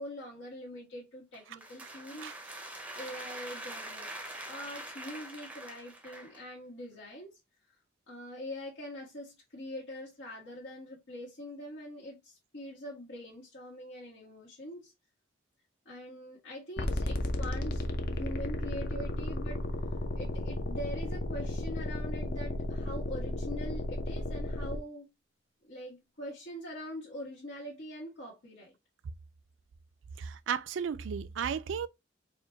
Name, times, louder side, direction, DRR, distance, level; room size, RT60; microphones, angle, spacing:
voice 1, 0.0-2.5 2.9-7.4 7.7-7.8 8.1-14.9 15.8-19.6 20.1-25.1 25.6-28.7, left 1 dB, 80° left, 1.3 m, -43 dB
sound 1, 1.3-6.4, right 1 dB, 10° right, 0.5 m, -44 dB
sound 2, 16.8-24.8, left 1 dB, 55° left, 0.6 m, -34 dB
voice 2, 30.2-31.9, right 7 dB, 85° right, 0.4 m, -34 dB
4.8 x 2.2 x 2.7 m
head